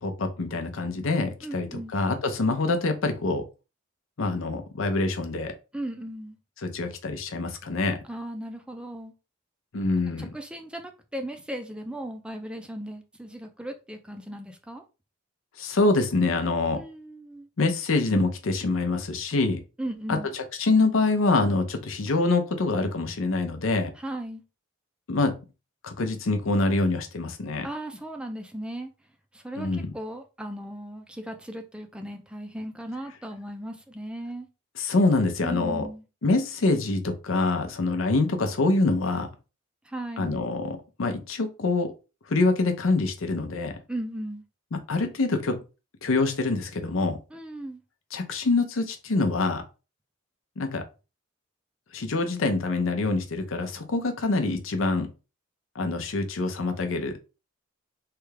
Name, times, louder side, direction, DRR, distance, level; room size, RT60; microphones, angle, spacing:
voice 1, 0.0-3.4 4.2-5.5 6.6-8.0 9.7-10.3 15.6-16.8 17.6-19.6 20.1-20.2 20.6-23.9 25.1-25.3 25.8-27.7 29.6-29.9 34.8-35.9 36.2-39.3 40.2-41.9 42.3-43.7 44.9-45.6 46.0-47.2 48.1-49.6 50.6-50.8 51.9-55.1 55.8-57.1, left 3 dB, 75° left, 0.6 m, -25 dB
voice 2, 1.4-1.9 5.7-6.4 8.0-9.1 10.2-14.8 16.7-17.5 19.8-20.3 24.0-24.4 27.6-28.9 29.3-34.5 35.4-36.0 39.9-40.3 43.9-44.4 47.3-47.8, right 1 dB, 5° right, 0.4 m, -37 dB
3.3 x 2.3 x 3.2 m
head